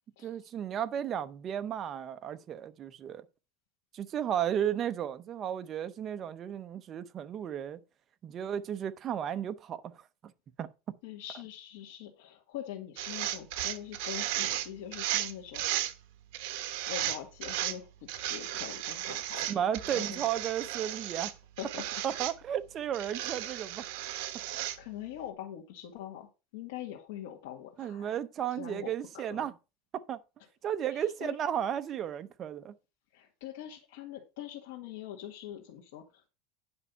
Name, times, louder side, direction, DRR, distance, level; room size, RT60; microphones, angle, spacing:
voice 1, 0.2-3.2 3.9-7.8 8.2-9.8 10.6-10.9 19.5-21.3 22.0-23.8 27.8-29.5 29.9-30.2 30.6-32.7, right 9 dB, 30° right, 0.7 m, -34 dB
voice 2, 11.0-15.7 16.9-20.3 21.1-21.3 21.6-21.8 24.1-28.2 28.5-29.5 30.9-31.3 33.1-36.3, left 11 dB, 75° left, 1.8 m, -44 dB
sound 1, 13.0-15.9 16.3-17.8 18.1-21.3 21.6-22.3 22.9-24.8, right 13 dB, 65° right, 1.1 m, -35 dB
9.8 x 5.5 x 5.4 m
supercardioid pair, 165°, 0 cm